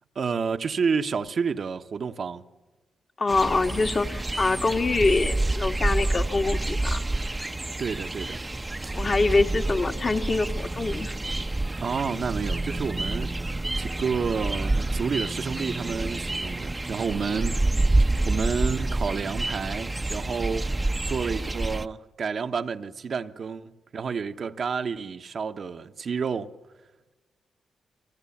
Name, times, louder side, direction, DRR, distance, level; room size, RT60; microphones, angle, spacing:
voice 1, 0.1-2.4 7.8-8.4 11.8-13.4 13.8-26.5, right 5 dB, 60° right, 1.1 m, -30 dB
voice 2, 3.2-7.1 8.9-11.1, left 3 dB, 45° left, 1.9 m, -25 dB
sound 1, 3.3-21.9, right 2 dB, 25° right, 0.8 m, -28 dB
28.5 x 25.0 x 7.2 m
supercardioid pair, 45°, 0 cm